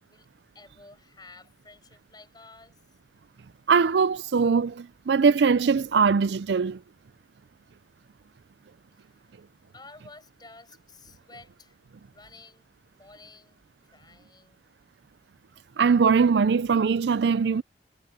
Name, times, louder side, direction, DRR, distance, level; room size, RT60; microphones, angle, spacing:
voice 1, 0.5-2.8 9.0-9.5 9.7-11.8 12.1-12.7 13.0-13.6 13.9-14.7, left 3 dB, 20° left, 7.3 m, -51 dB
voice 2, 3.7-6.8 15.8-17.6, right 5 dB, 65° right, 0.4 m, -21 dB
head